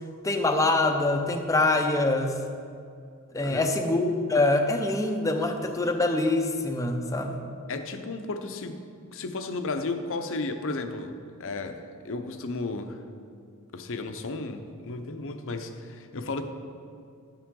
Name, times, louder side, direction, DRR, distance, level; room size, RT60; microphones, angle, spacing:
voice 1, 0.2-2.4 3.3-7.4, left 2 dB, 15° left, 4 dB, 0.6 m, -24 dB
voice 2, 3.4-3.8 7.7-8.8 9.1-11.1 11.4-13.0 13.7-16.4, left 3 dB, 60° left, 7 dB, 0.7 m, -34 dB
11.0 x 8.7 x 3.7 m, 2.3 s
head